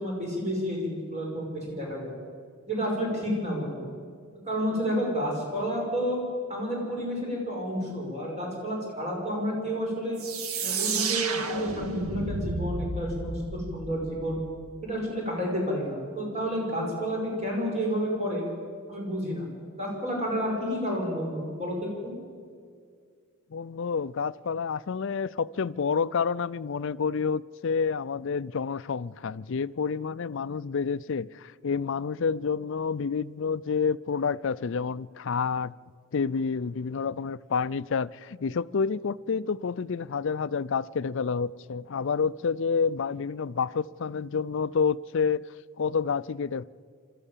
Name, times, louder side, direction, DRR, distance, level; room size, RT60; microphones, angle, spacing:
voice 1, 0.0-2.1 2.7-3.9 4.5-6.2 6.5-10.2 10.6-14.4 14.8-18.4 18.9-19.5 19.8-22.1, equal, 30° right, 6.0 m, -30 dB
sound 1, 10.2-14.8, right 4 dB, 80° right, 1.4 m, -32 dB
voice 2, 23.5-35.7 36.1-45.4 45.8-46.6, left 5 dB, 60° left, 0.4 m, -29 dB
27.0 x 13.5 x 7.4 m
head